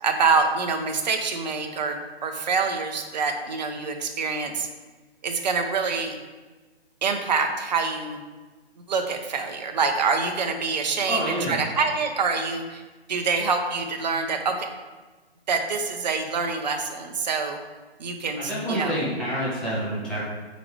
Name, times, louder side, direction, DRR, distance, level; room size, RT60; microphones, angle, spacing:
voice 1, 0.0-4.7 5.2-6.2 7.0-8.2 8.9-12.8 13.1-14.7 15.5-17.6 18.0-19.0, right 4 dB, 40° right, 5 dB, 0.8 m, -26 dB
voice 2, 11.1-11.7 18.3-20.2, equal, ahead, -9 dB, 1.2 m, -28 dB
6.8 x 5.0 x 3.3 m, 1.3 s
figure-of-eight pair, 140°, 32 cm